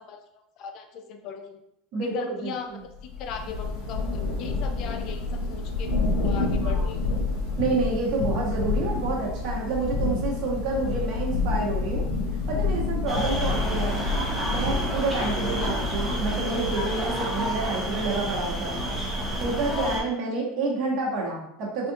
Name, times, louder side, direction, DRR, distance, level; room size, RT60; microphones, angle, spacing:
voice 1, 0.0-1.6 2.0-2.8 3.2-7.1 13.9-14.1 15.6-15.8, left 6 dB, 50° left, 6 dB, 0.4 m, -38 dB
voice 2, 1.9-2.8 6.6-7.0 7.6-12.1 12.5-14.0 14.5-18.8 19.4-21.9, right 3 dB, 55° right, -3 dB, 1.1 m, -29 dB
Thunder / Rain, 3.0-17.0, left 3 dB, 70° left, 1.0 m, -28 dB
sound 1, 13.1-20.0, right 1 dB, 5° right, 0.7 m, -29 dB
3.6 x 2.5 x 2.7 m, 0.76 s
supercardioid pair, 130°, 0 cm